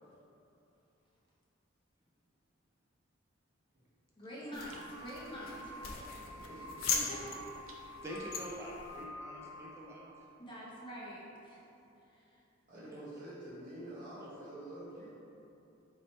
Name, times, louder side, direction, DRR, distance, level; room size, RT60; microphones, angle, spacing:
voice 1, 4.2-6.1 6.5-6.6 6.9-7.4 10.4-11.6 12.1-12.4, equal, 25° left, -7 dB, 0.7 m, -46 dB
sound 1, 4.5-9.1, left 5 dB, 80° left, 0.5 m, -40 dB
sound 2, 4.6-9.6, left 1 dB, 65° left, 1.2 m, -49 dB
sound 3, 4.7-4.9 7.0-8.4, right 4 dB, 75° right, 0.5 m, -57 dB
voice 2, 5.8-6.9 12.7-15.1, right 1 dB, 45° right, -11 dB, 0.9 m, -48 dB
voice 3, 8.0-10.0 12.7-13.0, equal, 15° right, -4 dB, 0.3 m, -45 dB
3.1 x 2.8 x 4.2 m, 2.8 s
head